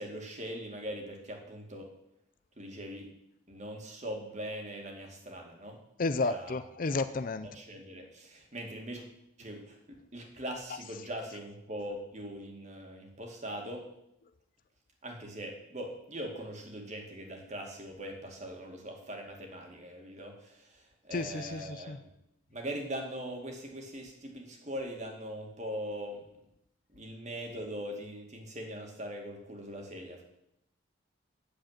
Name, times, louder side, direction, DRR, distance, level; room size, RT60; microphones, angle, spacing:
voice 1, 0.0-1.9 2.6-3.1 3.5-5.8 6.2-6.5 6.9-7.1 7.4-9.0 9.4-13.8 15.0-22.1 22.5-26.2 26.9-30.2, equal, 35° right, 2 dB, 2.3 m, -41 dB
voice 2, 6.0-7.5 21.1-22.0, left 3 dB, 40° left, 12 dB, 0.5 m, -32 dB
8.9 x 7.6 x 9.1 m, 0.79 s
head